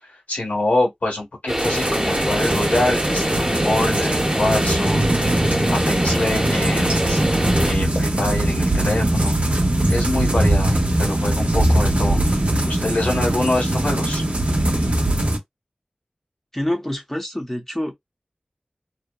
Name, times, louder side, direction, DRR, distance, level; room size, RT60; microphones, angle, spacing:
voice 1, 0.3-5.1 5.7-7.2 7.6-9.3 9.9-12.2 12.7-14.2, left 2 dB, 90° left, 1.4 m, -25 dB
sound 1, 1.5-7.7, equal, 20° right, 0.9 m, -24 dB
sound 2, 1.6-15.4, right 1 dB, 55° right, 0.7 m, -21 dB
voice 2, 16.5-17.9, left 1 dB, 10° left, 0.7 m, -26 dB
2.7 x 2.1 x 2.3 m
wide cardioid pair, 55°, 3 cm